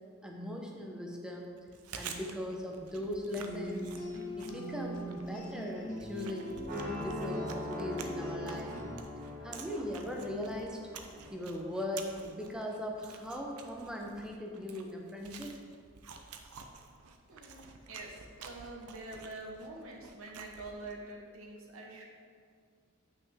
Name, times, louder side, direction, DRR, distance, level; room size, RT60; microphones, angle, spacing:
voice 1, 0.2-1.6 2.0-3.9 4.4-8.8 9.4-10.8 11.3-15.6, left 1 dB, 5° right, 0 dB, 0.7 m, -39 dB
Chewing mastication, 1.6-21.1, right 5 dB, 85° right, 0.6 m, -50 dB
sound 1, 3.4-9.0, equal, 35° left, 1.4 m, -41 dB
sound 2, 6.6-12.6, left 1 dB, 35° right, 1.3 m, -43 dB
voice 2, 17.3-22.1, right 2 dB, 65° right, -1 dB, 1.0 m, -46 dB
8.3 x 5.8 x 3.5 m, 2.1 s
head